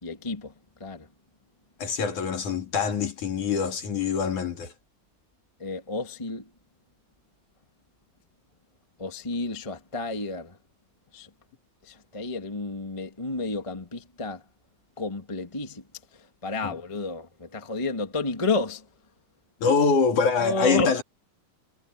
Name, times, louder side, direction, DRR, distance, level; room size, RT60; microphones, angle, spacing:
voice 1, 0.0-0.5 0.8-1.1 5.6-6.4 9.0-10.6 11.1-11.3 11.8-14.4 15.0-15.8 16.4-18.8 20.4-21.0, left 3 dB, 15° left, 1.2 m, -31 dB
voice 2, 1.8-4.7 16.6-16.8 19.6-21.0, left 5 dB, 55° left, 3.9 m, -24 dB
omnidirectional pair, 4.4 m